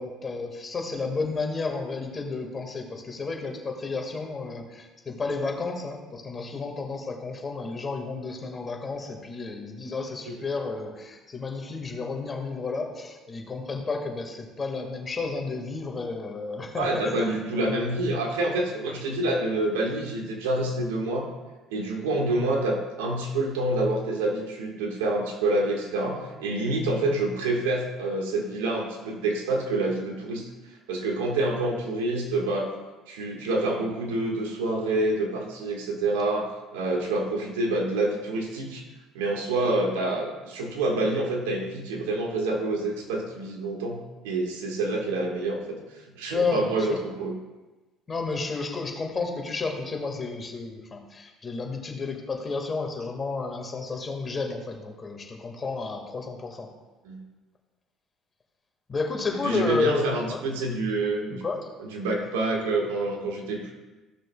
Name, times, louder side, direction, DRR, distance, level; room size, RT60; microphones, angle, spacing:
voice 1, 0.0-17.9 46.3-47.0 48.1-56.7 58.9-60.4 61.3-61.6, left 4 dB, 35° left, 2 dB, 1.8 m, -31 dB
voice 2, 16.8-21.3 21.7-30.4 30.9-32.7 33.1-38.8 39.1-45.6 46.1-47.4 57.0-57.2 59.4-61.4 61.8-63.7, right 2 dB, 85° right, 0 dB, 1.6 m, -27 dB
14.5 x 6.3 x 2.3 m, 1.2 s
hypercardioid pair, 70°, 0 cm